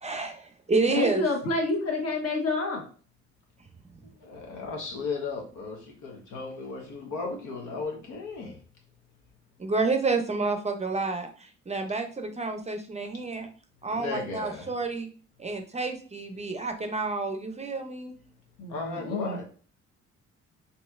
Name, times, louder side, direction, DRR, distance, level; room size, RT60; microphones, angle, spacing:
voice 1, 0.0-1.2 9.6-13.5 13.8-15.1 15.4-18.1, right 3 dB, 20° right, 0.5 m, -29 dB
voice 2, 0.9-2.8 18.6-19.4, left 2 dB, 55° left, 1.3 m, -28 dB
voice 3, 4.0-8.6 13.9-14.7 18.7-19.4, left 4 dB, 80° left, 1.2 m, -36 dB
4.1 x 2.9 x 2.4 m
cardioid pair, 90°, 30 cm